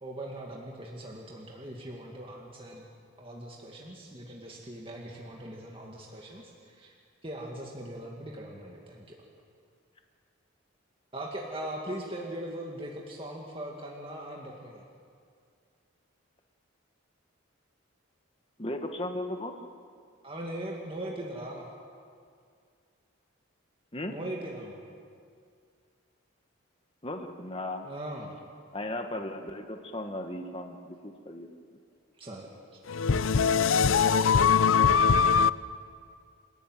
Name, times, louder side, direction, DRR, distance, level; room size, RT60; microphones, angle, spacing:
voice 1, 0.0-2.9 3.2-6.9 7.2-9.2 11.1-14.9 20.2-21.6 24.1-24.8 27.8-28.4 32.2-32.5, right 1 dB, 25° right, 2.2 m, -40 dB
voice 2, 18.6-19.5 23.9-24.1 27.0-27.9 28.7-31.0 31.2-31.8, left 1 dB, 25° left, 1.3 m, -36 dB
voice 3, 32.9-35.5, left 6 dB, 70° left, 0.6 m, -22 dB
27.5 x 14.5 x 9.2 m
head